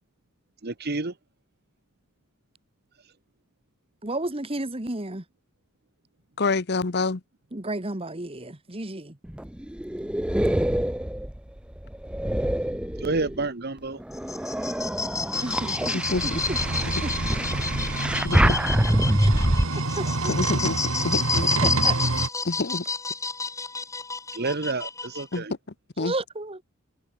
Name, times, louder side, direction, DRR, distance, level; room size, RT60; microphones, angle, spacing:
voice 1, 0.6-1.1 13.0-14.0 24.3-25.5, right 3 dB, 50° right, 1.3 m, -29 dB
voice 2, 4.0-5.2 7.5-9.2 15.4-16.6 17.0-17.4 19.2-19.3 20.0-20.3 21.6-22.0 26.0-26.6, right 2 dB, 25° right, 1.7 m, -32 dB
voice 3, 6.4-7.2 15.9-16.4 18.2-18.8 20.3-20.8 21.0-21.5 22.4-22.8 25.3-25.4 26.0-26.1, left 3 dB, 50° left, 0.9 m, -27 dB
sound 1, 9.2-13.5 14.0-19.6, equal, 5° right, 0.5 m, -26 dB
sound 2, 14.1-25.4, left 4 dB, 15° left, 1.7 m, -30 dB
sound 3, 15.4-22.3, right 2 dB, 65° right, 2.4 m, -28 dB
head